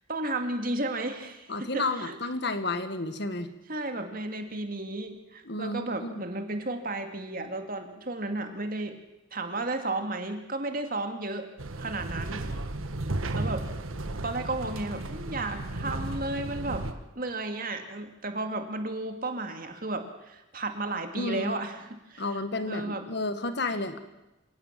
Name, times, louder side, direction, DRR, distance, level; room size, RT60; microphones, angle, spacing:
voice 1, 0.1-2.2 3.7-9.0 9.3-11.5 11.8-12.5 13.3-13.6 14.2-16.9 17.2-22.4 22.7-23.1, right 2 dB, 45° right, 6 dB, 2.4 m, -33 dB
voice 2, 1.5-3.5 5.5-6.2 21.2-21.6 22.2-24.0, left 2 dB, 55° left, 10 dB, 1.7 m, -31 dB
sound 1, 11.6-16.9, right 2 dB, 80° right, 1.5 m, -34 dB
27.0 x 17.0 x 7.6 m, 0.99 s
head